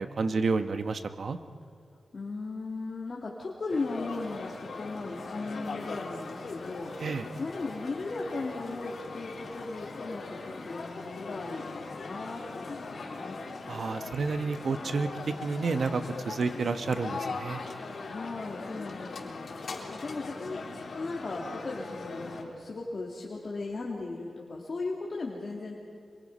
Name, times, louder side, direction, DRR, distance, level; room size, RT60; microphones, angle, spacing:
voice 1, 0.0-1.4 7.0-7.3 13.7-15.1 15.4-17.6, right 4 dB, 60° right, 8 dB, 1.1 m, -30 dB
voice 2, 2.1-6.9 7.4-13.4 18.0-25.7, left 3 dB, 45° left, -3 dB, 2.6 m, -37 dB
sound 1, 3.7-22.4, left 3 dB, 65° left, 3.8 m, -40 dB
27.5 x 23.0 x 5.6 m, 2.4 s
wide cardioid pair, 100°, 0 cm